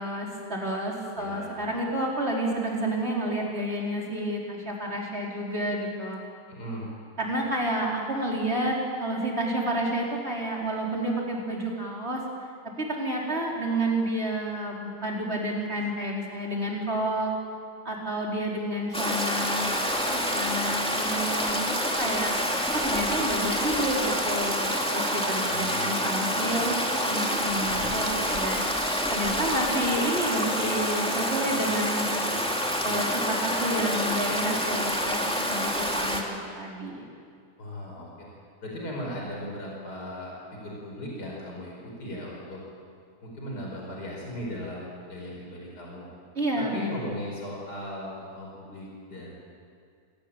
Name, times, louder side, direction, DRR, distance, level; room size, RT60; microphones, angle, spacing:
voice 1, 0.0-6.2 7.2-12.2 12.8-17.3 17.8-21.6 22.0-22.3 22.7-26.7 27.0-28.6 29.1-32.1 32.8-36.3 36.5-37.0 46.3-47.0, right 1 dB, 35° right, -3 dB, 5.0 m, -30 dB
voice 2, 1.2-1.6 6.5-6.9 25.4-25.9 26.3-26.8 27.5-27.9 32.7-33.0 37.6-38.3 38.6-42.6 43.2-46.1 46.6-49.3, equal, 70° left, -3 dB, 5.8 m, -38 dB
Stream, 18.9-36.2, equal, 5° left, 2.6 m, -27 dB
27.0 x 18.0 x 9.0 m, 2.2 s
omnidirectional pair, 1.8 m